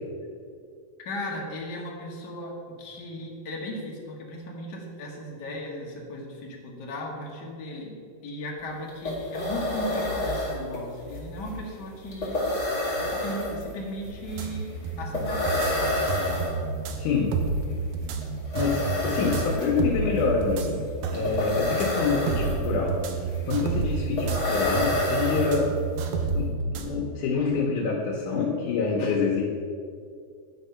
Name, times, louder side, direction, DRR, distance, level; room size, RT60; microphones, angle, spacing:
voice 1, 1.0-12.4 13.0-16.1, left 1 dB, 60° left, -1 dB, 1.1 m, -37 dB
sound 1, 8.6-8.7 8.9-26.0, left 1 dB, 20° left, 1.3 m, -30 dB
sound 2, 14.4-26.9, right 5 dB, 80° right, 1.9 m, -31 dB
voice 2, 16.9-17.3 18.5-20.8 21.1-22.9 23.5-25.7 26.3-29.4, left 4 dB, 85° left, -3 dB, 2.4 m, -26 dB
10.5 x 3.6 x 5.6 m, 2.3 s
omnidirectional pair, 3.5 m